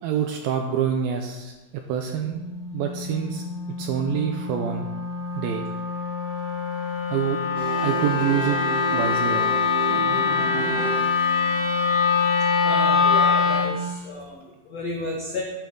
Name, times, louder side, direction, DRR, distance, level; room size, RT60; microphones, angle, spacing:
voice 1, 0.0-1.5 1.9-2.4 2.7-3.4 3.8-4.9 5.4-5.7 7.1-7.4 7.8-8.6 8.9-9.5, right 8 dB, 80° right, 4 dB, 2.2 m, -26 dB
Wind instrument woodwind instrument, 2.2-13.8, left 5 dB, 60° left, 3.2 m, -24 dB
sound 1, 7.5-12.8, right 4 dB, 50° right, 1.9 m, -32 dB
voice 2, 12.6-15.4, left 2 dB, 80° left, -1 dB, 1.4 m, -32 dB
11.5 x 9.3 x 3.9 m, 1.1 s
omnidirectional pair, 4.9 m